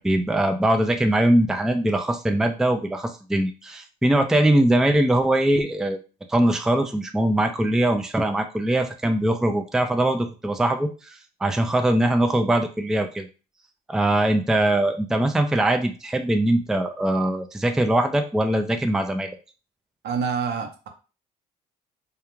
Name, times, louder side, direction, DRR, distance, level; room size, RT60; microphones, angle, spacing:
voice 1, 0.0-6.0 6.3-13.3 13.9-19.3, right 1 dB, 5° right, 5 dB, 0.4 m, -22 dB
voice 2, 20.0-20.9, right 6 dB, 65° right, 4 dB, 0.7 m, -27 dB
2.3 x 2.2 x 3.0 m, 0.34 s
supercardioid pair, 70°, 18 cm